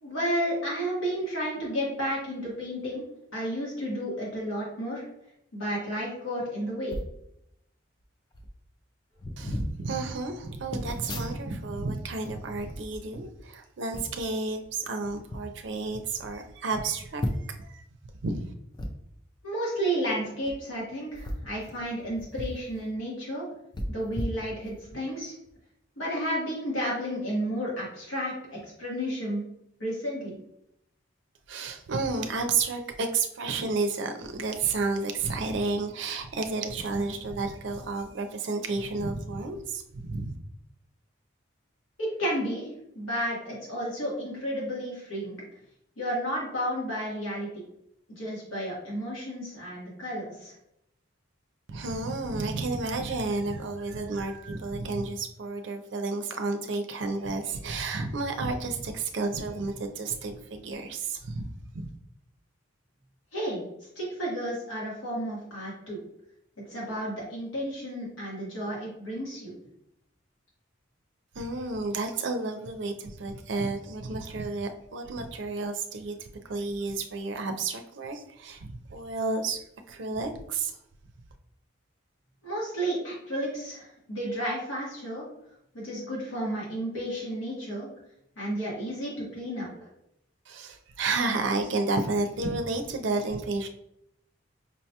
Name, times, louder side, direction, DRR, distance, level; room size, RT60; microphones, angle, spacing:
voice 1, 0.0-3.0 3.3-5.0 5.5-6.9 19.4-23.4 23.9-25.3 26.0-29.4 29.8-30.3 42.0-42.7 42.9-45.4 46.0-47.5 48.1-50.6 63.3-63.6 63.9-66.0 66.7-69.5 82.4-85.2 85.7-87.9 88.4-89.9, equal, 90° left, -5 dB, 1.4 m, -32 dB
sound 1, 6.9-7.2 8.0-8.1 8.3-8.6 9.2-9.7 10.7-11.7 12.0-13.4 13.9-14.3 15.0-15.4 16.0-16.1 16.3-16.4 17.2-17.7 18.7-18.9 20.3-20.5 21.1-22.6 22.9-23.0 23.7-24.9 25.4-25.6, left 1 dB, 20° left, 0.3 m, -35 dB
voice 2, 9.4-17.8 18.2-18.5 31.5-40.4 51.7-61.5 61.7-61.9 71.3-79.6 79.9-80.8 90.5-93.7, right 3 dB, 65° right, 6 dB, 0.5 m, -31 dB
5.3 x 2.2 x 2.8 m, 0.76 s
head